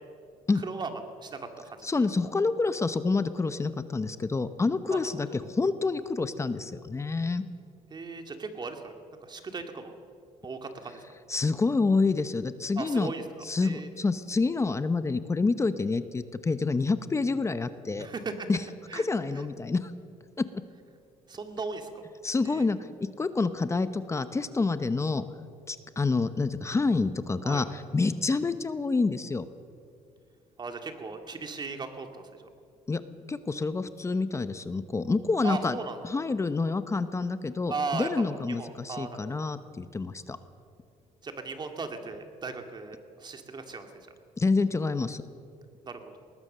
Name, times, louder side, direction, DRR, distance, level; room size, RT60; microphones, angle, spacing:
voice 1, 1.2-1.9 4.9-5.1 7.9-8.9 9.2-10.0 10.4-11.1 12.8-13.2 13.6-13.9 18.0-18.3 18.9-19.1 19.3-19.5 21.3-22.0 22.4-22.7 27.4-27.6 30.6-32.5 35.4-36.0 37.7-39.4 41.2-43.9 45.8-46.0, right 4 dB, 30° right, 5 dB, 2.3 m, -37 dB
voice 2, 1.8-7.4 11.3-13.1 13.4-18.1 18.5-18.6 18.9-19.9 20.4-20.5 22.2-22.8 23.2-25.2 25.7-29.5 32.9-33.0 33.3-35.8 36.0-40.4 44.4-45.2, left 3 dB, 20° left, 12 dB, 0.9 m, -28 dB
20.5 x 19.5 x 6.8 m, 2.3 s
cardioid pair, 115°, 14 cm